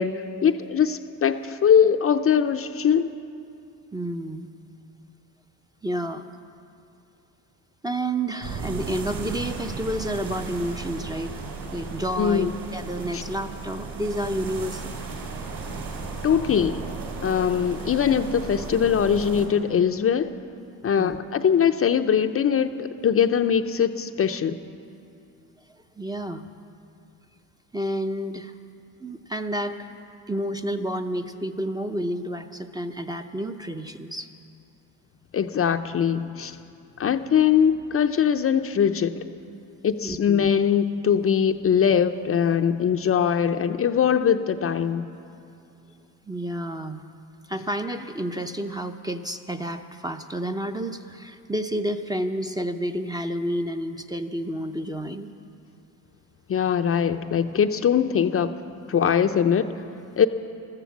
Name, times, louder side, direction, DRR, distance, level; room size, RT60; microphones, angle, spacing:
voice 1, 0.0-3.1 12.2-12.5 13.1-13.2 16.2-16.8 17.2-20.3 20.8-24.6 35.3-36.6 37.0-39.2 39.8-45.1 56.5-58.5 58.9-59.7 60.2-60.3, left 8 dB, 35° left, 8 dB, 0.6 m, -21 dB
voice 2, 3.9-4.5 5.8-6.3 7.8-11.4 11.7-14.9 21.0-21.2 26.0-26.4 27.7-28.5 29.0-29.8 30.3-34.3 40.0-40.5 46.3-47.0 47.5-55.3, right 1 dB, 10° right, 6 dB, 0.6 m, -30 dB
sound 1, 8.4-19.5, right 4 dB, 55° right, 3.9 m, -35 dB
14.5 x 13.5 x 7.3 m, 2.6 s
cardioid pair, 100°, 40 cm